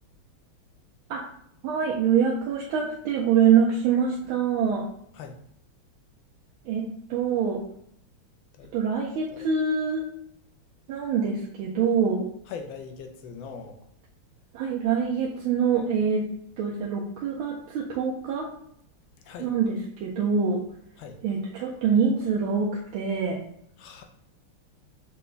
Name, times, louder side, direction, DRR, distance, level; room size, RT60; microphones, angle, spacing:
voice 1, 1.6-4.9 6.6-7.6 8.7-10.1 10.9-12.3 14.5-16.3 16.6-18.5 19.4-20.6 21.2-23.4, right 6 dB, 80° right, -2 dB, 1.4 m, -25 dB
voice 2, 12.5-13.8 19.2-19.5 21.0-21.2 23.8-24.0, left 5 dB, 75° left, 4 dB, 1.2 m, -41 dB
5.7 x 2.1 x 3.9 m, 0.70 s
omnidirectional pair, 2.4 m